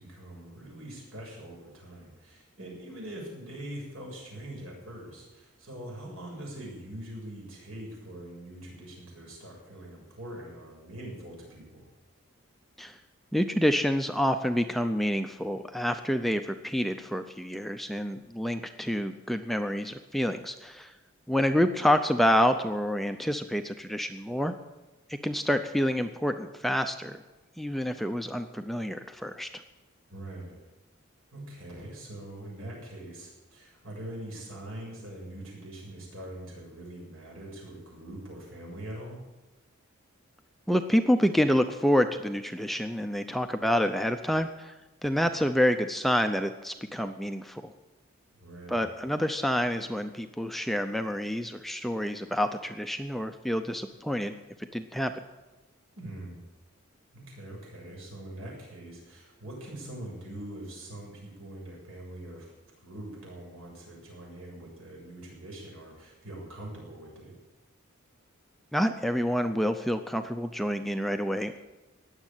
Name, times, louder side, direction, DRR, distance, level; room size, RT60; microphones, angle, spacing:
voice 1, 0.0-11.8 30.1-30.6 31.3-39.2 48.3-48.8 56.0-56.4 57.1-62.5 62.8-67.3, right 1 dB, 75° right, -2 dB, 7.3 m, -43 dB
voice 2, 13.3-20.9 21.3-24.6 25.1-27.2 27.6-29.5 40.7-44.7 45.0-47.7 48.7-55.1 68.7-71.6, equal, ahead, 7 dB, 0.5 m, -28 dB
19.0 x 7.5 x 9.0 m, 1.1 s
head